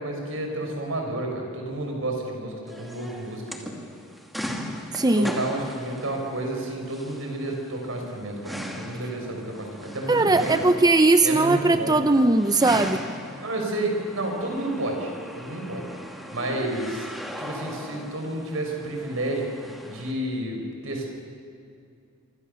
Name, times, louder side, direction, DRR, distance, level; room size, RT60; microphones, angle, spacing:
voice 1, 0.0-3.7 5.1-10.7 11.2-12.1 13.4-15.1 15.4-15.9 16.3-17.1 17.4-19.5 19.8-21.1, right 1 dB, 75° right, 2 dB, 6.3 m, -30 dB
sound 1, 2.7-20.1, equal, ahead, 2.3 m, -39 dB
voice 2, 4.9-5.3 10.1-13.0, right 2 dB, 20° right, 9 dB, 0.7 m, -19 dB
27.5 x 25.0 x 7.1 m, 2.4 s
head